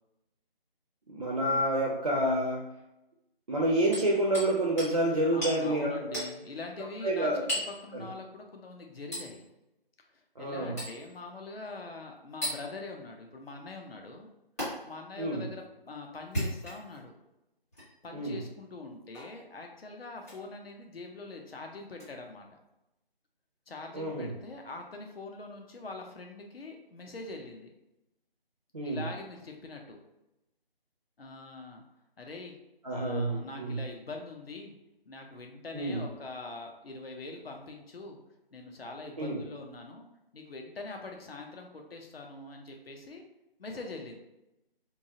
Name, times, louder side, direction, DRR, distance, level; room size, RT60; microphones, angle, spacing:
voice 1, 1.1-2.6 3.5-6.3 7.0-7.5 7.9-8.1 10.4-10.8 15.2-15.5 18.1-18.4 23.9-24.3 28.7-29.1 32.8-33.8 35.7-36.1 39.2-39.4, right 1 dB, 45° right, -3 dB, 0.4 m, -29 dB
Hammer, 3.9-4.5 4.8-4.9 5.4-5.6 6.1-6.3 7.5-7.8 9.1-9.3 10.8-11.0 12.4-12.6 14.6-14.7 16.2-17.0 17.7-17.9 19.1-19.3 20.2-20.4 22.0-22.1, equal, 15° left, 0.7 m, -34 dB
voice 2, 5.3-7.3 7.8-9.4 10.1-14.3 14.8-17.1 18.0-22.4 23.7-27.7 28.8-30.0 31.2-31.8 32.2-32.6 32.9-34.7 35.1-38.2 38.5-40.1 40.3-43.2 43.6-44.2, left 3 dB, 80° left, 2 dB, 0.6 m, -43 dB
2.8 x 2.3 x 2.7 m, 0.92 s
figure-of-eight pair, 160°, 30 cm